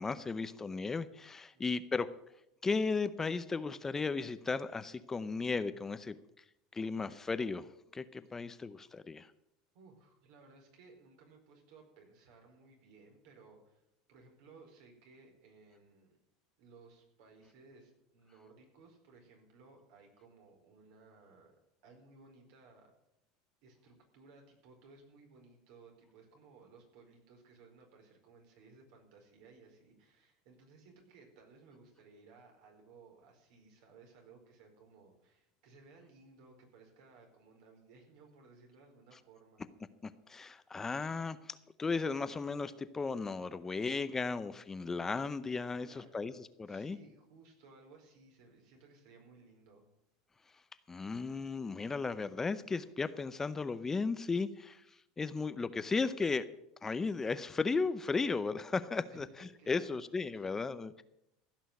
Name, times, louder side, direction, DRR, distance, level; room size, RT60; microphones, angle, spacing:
voice 1, 0.0-2.1 2.6-6.2 6.7-7.7 7.9-9.3 40.0-47.0 50.9-54.8 55.2-56.5 56.8-59.3 59.7-61.0, left 4 dB, 15° left, 13 dB, 0.6 m, -35 dB
voice 2, 9.7-13.8 14.1-16.2 16.6-21.5 21.8-22.9 23.6-39.6 45.8-46.3 46.6-49.8 59.1-60.0 60.3-60.6, right 4 dB, 70° right, 2 dB, 4.6 m, -60 dB
15.5 x 6.1 x 9.5 m, 0.84 s
supercardioid pair, 130°, 3 cm